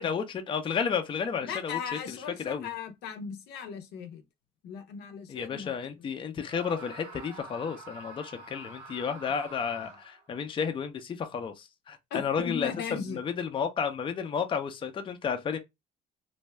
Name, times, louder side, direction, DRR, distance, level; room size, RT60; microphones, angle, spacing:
voice 1, 0.0-1.8 2.1-2.7 5.3-15.6, left 6 dB, 30° left, 0.5 m, -32 dB
voice 2, 1.4-4.2 4.6-5.7 12.1-13.2, left 6 dB, 75° left, 0.6 m, -37 dB
Screaming, 6.5-10.3, right 3 dB, 70° right, 1.0 m, -47 dB
2.6 x 2.2 x 3.1 m
cardioid pair, 110°, 17 cm